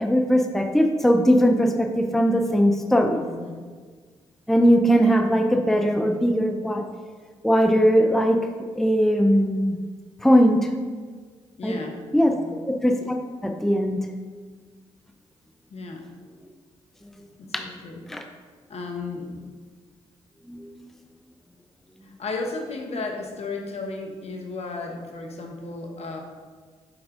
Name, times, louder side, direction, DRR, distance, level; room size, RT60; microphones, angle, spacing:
voice 1, 0.0-3.2 4.5-6.8 7.4-8.4 8.7-9.8 10.2-10.7 11.6-11.8 12.1-12.3 12.7-13.2 13.4-14.1 17.5-17.7 18.1-18.2 20.5-20.9, equal, ahead, 3 dB, 0.6 m, -20 dB
voice 2, 3.2-3.6 11.6-12.0 12.3-12.5 15.7-16.0 17.4-18.0 18.7-19.5 22.0-26.2, left 3 dB, 55° left, 2 dB, 1.1 m, -34 dB
6.2 x 4.7 x 3.8 m, 1.6 s
hypercardioid pair, 45°, 13 cm